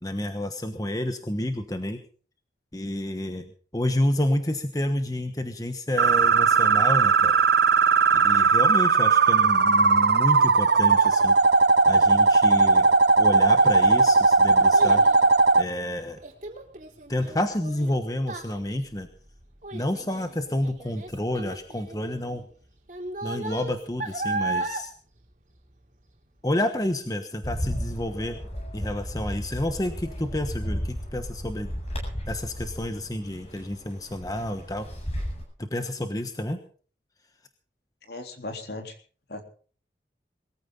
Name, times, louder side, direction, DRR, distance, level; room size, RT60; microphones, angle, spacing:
voice 1, 0.0-2.0 2.7-3.4 3.7-7.3 8.1-11.4 11.9-12.9 13.2-15.0 15.6-16.2 17.1-19.1 19.7-22.5 23.2-24.9 26.4-28.4 28.7-31.7 32.3-34.9 35.6-36.6, left 1 dB, 20° left, 7 dB, 1.2 m, -29 dB
sound 1, 6.0-15.6, right 4 dB, 65° right, 0.8 m, -18 dB
Child speech kid speaking, 13.6-26.2 26.6-27.0 27.5-27.6, right 2 dB, 45° right, 3.3 m, -36 dB
Bird, 27.4-35.4, equal, 35° left, 7.9 m, -34 dB
voice 2, 38.0-38.9 39.3-39.4, left 2 dB, 65° left, 4 dB, 3.7 m, -37 dB
21.5 x 15.0 x 3.9 m, 0.43 s
head